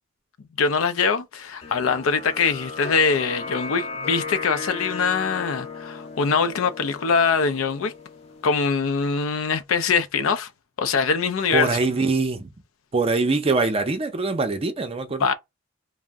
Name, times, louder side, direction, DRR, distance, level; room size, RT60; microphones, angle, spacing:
voice 1, 0.6-7.9 8.4-10.5 10.8-11.8 15.2-15.3, left 5 dB, 90° left, 0.4 m, -23 dB
sound 1, 1.6-8.5, left 4 dB, 30° left, 0.5 m, -35 dB
voice 2, 11.5-12.5 12.9-15.3, right 3 dB, 30° right, 0.5 m, -23 dB
2.5 x 2.0 x 3.4 m
head